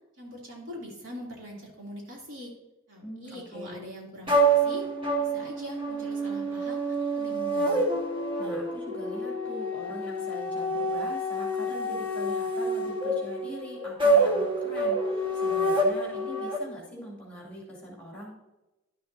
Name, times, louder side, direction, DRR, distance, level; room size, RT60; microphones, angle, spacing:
voice 1, 0.2-2.5 2.9-4.9 5.2-7.8, equal, 65° right, -3 dB, 2.8 m, -42 dB
voice 2, 3.0-3.8 8.4-18.4, equal, 5° left, -3 dB, 2.6 m, -42 dB
sound 1, 4.3-16.6, right 1 dB, 25° right, 1.7 m, -27 dB
11.5 x 6.9 x 2.7 m, 1.0 s
head